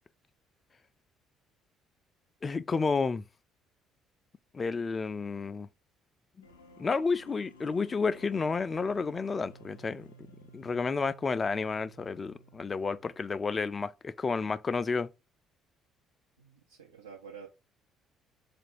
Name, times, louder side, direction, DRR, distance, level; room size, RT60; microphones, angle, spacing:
voice 1, 2.4-3.2 4.5-5.7 6.8-10.1 10.5-15.1, left 4 dB, 30° left, 0.3 m, -31 dB
sound 1, 6.4-13.4, right 1 dB, 85° left, 0.6 m, -56 dB
voice 2, 16.4-17.5, right 6 dB, 80° right, 0.6 m, -49 dB
4.4 x 2.5 x 4.5 m
figure-of-eight pair, 50°, 0 cm